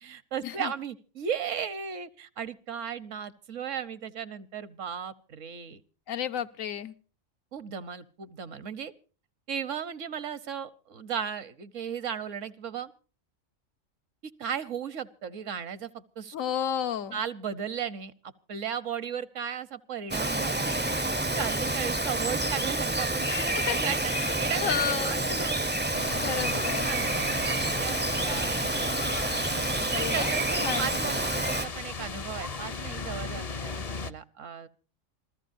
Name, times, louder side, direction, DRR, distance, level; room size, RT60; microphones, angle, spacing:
voice 1, 0.0-5.8 7.5-8.9 9.5-12.9 14.2-16.3 17.1-18.1 18.5-20.7 21.3-25.6 26.5-28.0 28.2-29.1 29.9-34.7, right 8 dB, 70° right, 16 dB, 1.3 m, -36 dB
voice 2, 6.1-6.9 16.3-17.2 23.3-23.8 24.1-25.2 26.1-26.9 29.9-30.3 30.6-30.9, left 8 dB, 80° left, 9 dB, 1.3 m, -32 dB
Bird vocalization bird call bird song, 20.1-31.7, right 2 dB, 15° right, 0.5 m, -28 dB
sound 1, 25.9-34.1, left 5 dB, 35° left, 0.7 m, -37 dB
26.5 x 15.0 x 2.6 m, 0.37 s
omnidirectional pair, 1.4 m